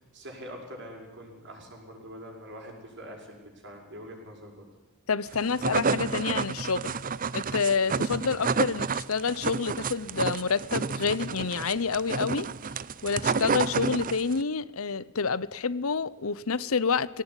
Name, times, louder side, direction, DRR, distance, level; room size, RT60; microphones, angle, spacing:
voice 1, 0.1-4.7, equal, 55° right, 6.6 m, -44 dB
voice 2, 5.1-7.0 7.3-12.5 13.0-17.2, left 5 dB, 75° left, 0.8 m, -28 dB
sound 1, 5.3-14.4, right 5 dB, 40° right, 0.6 m, -30 dB
21.0 x 18.0 x 9.9 m
head